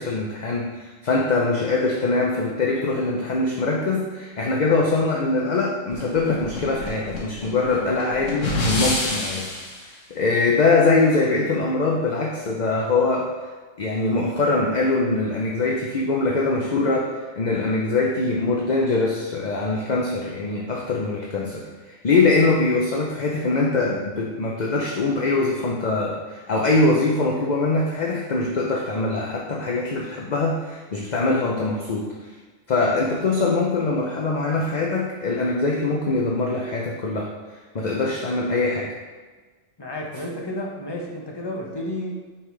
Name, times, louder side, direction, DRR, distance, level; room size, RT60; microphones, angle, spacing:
voice 1, 0.0-9.5 10.1-13.3 13.8-32.1 32.7-37.3 37.7-38.9, left 3 dB, 45° left, -1 dB, 0.7 m, -23 dB
sound 1, 5.9-9.8, left 2 dB, 80° left, 1.6 m, -28 dB
voice 2, 39.8-42.1, left 1 dB, 20° left, -1 dB, 1.0 m, -31 dB
8.1 x 5.8 x 3.3 m, 1.3 s
omnidirectional pair, 1.3 m